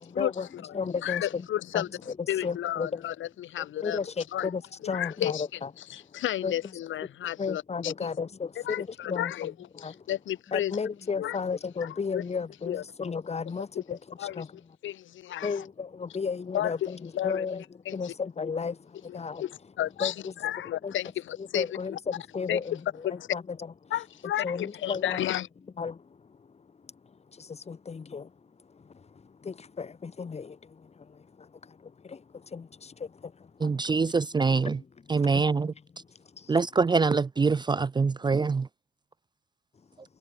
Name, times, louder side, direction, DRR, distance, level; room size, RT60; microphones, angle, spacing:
voice 1, 0.1-1.5 1.7-3.0 3.6-6.6 7.4-10.1 10.5-14.8 15.4-19.5 20.0-20.3 20.8-20.9 21.4-23.9 24.4-25.2 25.8-34.1 34.7-36.6 39.7-40.0, left 5 dB, 30° left, 1.8 m, -35 dB
voice 2, 1.0-1.9 2.3-4.0 4.3-4.5 4.8-5.4 5.9-7.9 8.7-9.5 9.8-10.7 11.2-11.4 12.1-12.2 12.7-12.8 14.2-14.4 14.8-15.5 16.5-16.7 17.2-17.5 17.9-18.1 19.1-19.5 19.8-20.1 20.4-21.6 21.9-22.0 22.5-22.6 23.0-23.1 23.9-25.5, left 12 dB, 75° left, 2.3 m, -32 dB
voice 3, 33.6-34.8 35.1-35.7 36.5-38.7, right 4 dB, 20° right, 0.5 m, -24 dB
cardioid pair, 90°, 20 cm